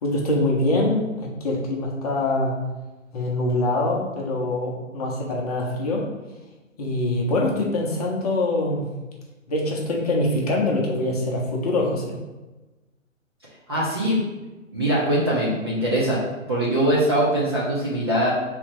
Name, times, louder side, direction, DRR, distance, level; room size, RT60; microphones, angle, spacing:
voice 1, 0.0-2.5 3.1-6.0 6.8-8.8 9.5-12.2, left 2 dB, 30° left, -2 dB, 0.7 m, -24 dB
voice 2, 13.7-14.2 14.7-16.2 16.5-18.3, right 1 dB, 20° right, -7 dB, 0.5 m, -22 dB
3.4 x 3.2 x 4.9 m, 1.1 s
figure-of-eight pair, 135°, 40 cm